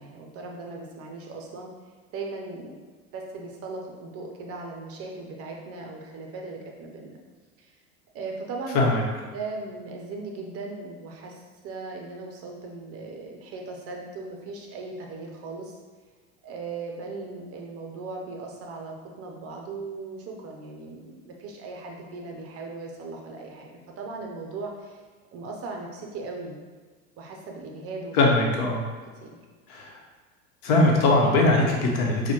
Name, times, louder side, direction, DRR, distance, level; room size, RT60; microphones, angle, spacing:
voice 1, 0.0-1.7 2.1-2.8 3.1-7.2 7.6-7.7 8.1-8.9 9.3-11.4 11.6-15.7 16.4-25.0 25.3-26.7 27.2-28.2 29.2-29.4, right 3 dB, 35° right, 1 dB, 0.6 m, -38 dB
voice 2, 28.1-28.8 29.7-30.0 30.6-32.3, left 2 dB, 55° left, -1 dB, 1.0 m, -21 dB
5.5 x 2.3 x 3.0 m, 1.4 s
hypercardioid pair, 85°, 44 cm